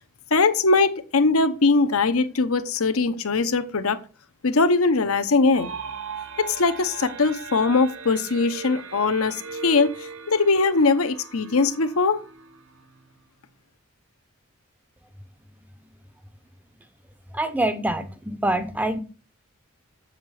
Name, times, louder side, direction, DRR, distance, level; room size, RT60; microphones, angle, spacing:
voice 1, 0.3-4.0 4.4-5.7 6.4-12.2, left 3 dB, 75° left, 0.9 m, -21 dB
sound 1, 5.5-13.2, right 5 dB, 65° right, 1.1 m, -39 dB
voice 2, 17.3-19.0, right 1 dB, 5° right, 0.6 m, -25 dB
7.9 x 7.3 x 4.8 m
head